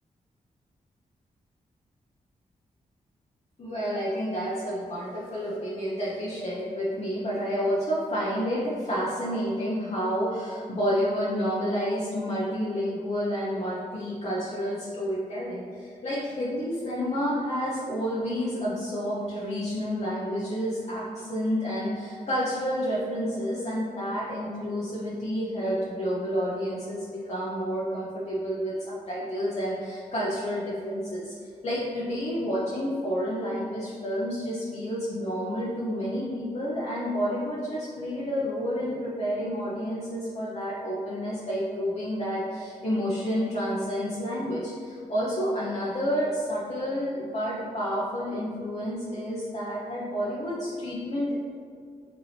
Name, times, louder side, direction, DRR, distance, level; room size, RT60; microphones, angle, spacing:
voice 1, 3.6-31.3 31.6-51.4, equal, 45° left, -8 dB, 1.0 m, -30 dB
5.2 x 2.9 x 3.3 m, 2.1 s
cardioid pair, 50°, 15 cm